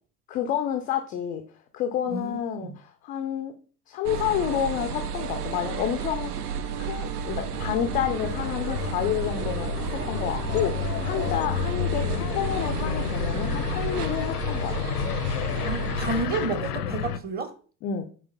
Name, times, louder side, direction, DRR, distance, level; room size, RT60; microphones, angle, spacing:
voice 1, 0.3-1.4 1.7-3.5 3.9-6.5 6.8-15.0 17.8-18.1, left 10 dB, 20° left, 0.3 m, -29 dB
voice 2, 2.1-2.8 15.6-17.5, right 4 dB, 20° right, 0.9 m, -31 dB
sound 1, 4.0-16.3, right 7 dB, 75° right, 0.7 m, -32 dB
sound 2, 7.0-17.2, left 9 dB, 75° left, 0.6 m, -31 dB
6.0 x 4.4 x 4.0 m
figure-of-eight pair, 75°, 47 cm